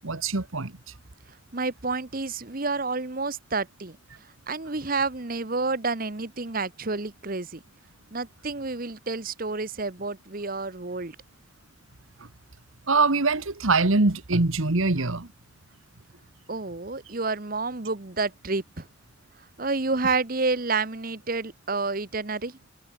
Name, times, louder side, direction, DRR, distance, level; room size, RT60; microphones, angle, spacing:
voice 1, 0.0-0.7 12.9-15.3, right 3 dB, 75° right, 1.6 m, -23 dB
voice 2, 1.5-4.0 4.5-7.6 8.1-11.2 16.5-18.9 19.6-22.6, right 3 dB, 45° right, 1.2 m, -29 dB
head